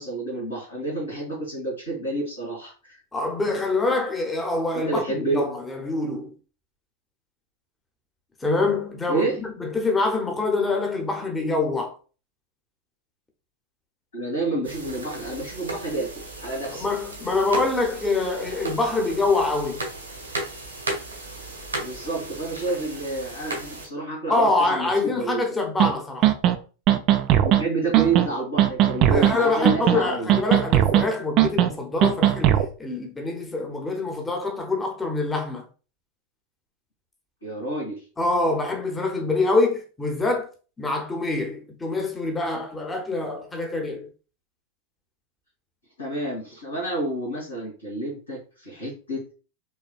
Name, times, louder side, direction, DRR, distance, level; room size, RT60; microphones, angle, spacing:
voice 1, 0.0-3.0 4.7-5.4 9.1-9.4 14.1-16.8 21.8-25.4 27.4-30.3 37.4-38.0 46.0-49.3, right 2 dB, 75° left, 2.0 m, -29 dB
voice 2, 3.1-6.3 8.4-11.9 16.8-19.8 24.3-26.3 29.1-35.6 38.2-40.5 40.8-44.1, left 3 dB, 15° left, 0.9 m, -25 dB
sound 1, 14.6-23.9, right 2 dB, 80° right, 1.4 m, -35 dB
sound 2, 25.8-25.9 26.2-26.5 26.9-27.6 27.9-28.3 28.6-29.3 29.6-30.0 30.3-31.0 31.4-31.7 32.0-32.7, right 12 dB, 40° right, 0.4 m, -18 dB
5.4 x 3.2 x 2.4 m
figure-of-eight pair, 90°, 0 cm